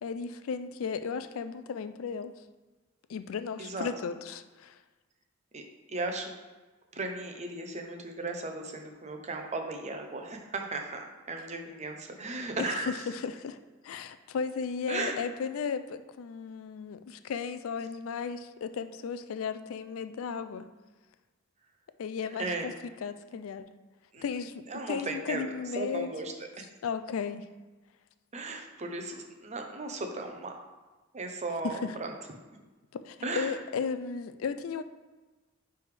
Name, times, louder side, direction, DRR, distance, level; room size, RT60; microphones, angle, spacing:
voice 1, 0.0-2.3 3.1-4.8 12.6-13.6 13.8-20.7 22.0-22.7 23.0-23.7 24.2-26.1 26.8-27.4 31.6-31.9 33.0-34.8, left 6 dB, 80° left, 11 dB, 0.4 m, -35 dB
voice 2, 3.6-3.9 5.5-5.6 5.9-6.3 6.9-12.9 14.9-15.2 22.4-22.7 24.1-24.2 24.7-26.3 28.3-30.6 31.1-32.1 33.2-33.5, right 3 dB, 35° right, 4 dB, 0.7 m, -36 dB
9.4 x 3.4 x 3.3 m, 1.2 s
head